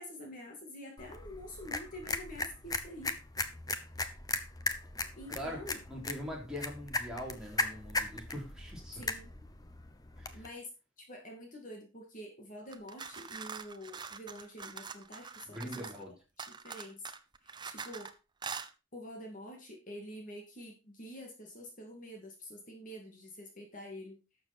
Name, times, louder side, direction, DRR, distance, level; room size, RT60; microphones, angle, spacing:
voice 1, 0.0-3.2 5.2-5.8 9.0-9.3 10.3-10.7 11.0-15.9 16.4-17.1 17.4-18.1 18.9-24.2, equal, 40° left, 2 dB, 2.4 m, -47 dB
sound 1, 1.0-10.5, left 3 dB, 20° left, 0.8 m, -38 dB
voice 2, 5.9-9.0 10.2-10.4 15.5-16.1, equal, 5° right, -3 dB, 3.6 m, -42 dB
sound 2, 12.7-16.0 16.4-18.1 18.4-18.7, right 5 dB, 20° right, 0.8 m, -44 dB
12.0 x 7.2 x 4.3 m, 0.30 s
head